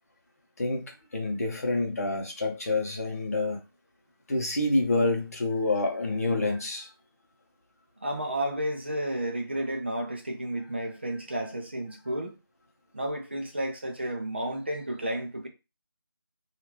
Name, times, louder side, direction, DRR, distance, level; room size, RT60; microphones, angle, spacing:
voice 1, 0.6-3.6 4.3-6.9, left 2 dB, 40° left, 0.7 m, -28 dB
voice 2, 8.0-12.4 12.9-15.5, right 1 dB, 25° right, 0.5 m, -32 dB
2.8 x 2.4 x 3.2 m
figure-of-eight pair, 165°, 13 cm